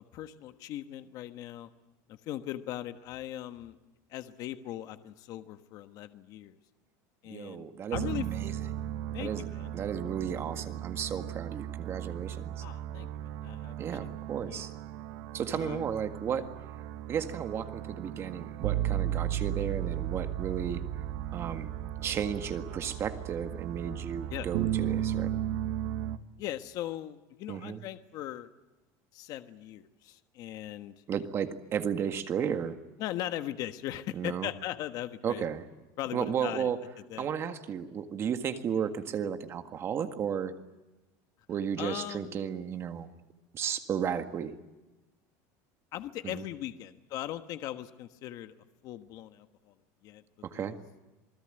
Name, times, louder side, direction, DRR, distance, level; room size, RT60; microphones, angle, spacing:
voice 1, 0.1-1.7 2.1-3.7 4.1-6.6 7.2-8.2 9.1-9.7 12.6-14.0 14.5-14.7 15.5-15.9 24.3-24.5 26.4-28.5 29.1-30.9 33.0-35.4 36.0-36.7 37.1-37.3 41.8-42.4 45.9-48.5 48.8-49.7 50.0-50.2 50.5-50.7, left 13 dB, 50° left, 9 dB, 1.3 m, -39 dB
voice 2, 7.3-8.6 9.2-9.4 9.7-12.6 13.8-14.7 15.3-16.5 17.1-20.8 21.3-21.7 22.0-25.4 27.5-27.8 31.1-32.8 34.1-34.5 35.2-35.7 36.1-36.8 37.2-40.5 41.5-43.1 43.5-44.5 46.2-46.4 50.4-50.8, right 8 dB, 30° right, 8 dB, 1.8 m, -34 dB
sound 1, 7.9-26.2, right 11 dB, 80° right, 1.4 m, -35 dB
27.5 x 20.0 x 9.0 m, 1.1 s
cardioid pair, 155°, 8 cm